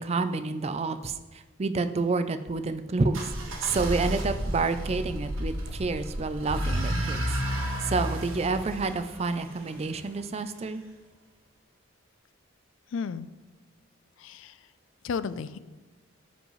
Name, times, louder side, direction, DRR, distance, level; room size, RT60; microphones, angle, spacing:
voice 1, 0.0-3.3 3.6-7.2 7.8-10.8, right 3 dB, 30° right, 11 dB, 0.4 m, -29 dB
sound 1, 3.1-10.0, equal, 90° right, 1.4 m, -32 dB
voice 2, 12.9-13.3 14.2-14.6 15.0-15.6, left 5 dB, 70° left, 15 dB, 0.4 m, -33 dB
14.0 x 5.2 x 3.1 m, 1.2 s
head